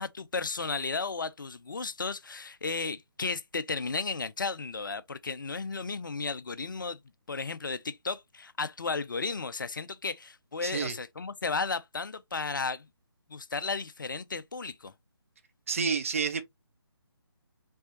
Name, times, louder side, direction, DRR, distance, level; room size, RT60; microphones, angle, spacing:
voice 1, 0.0-7.0 7.3-12.9 13.3-14.9, left 4 dB, 50° left, 0.5 m, -34 dB
voice 2, 10.6-11.0 15.7-16.4, right 5 dB, 30° right, 0.6 m, -29 dB
5.4 x 2.7 x 2.8 m
figure-of-eight pair, 150°, 14 cm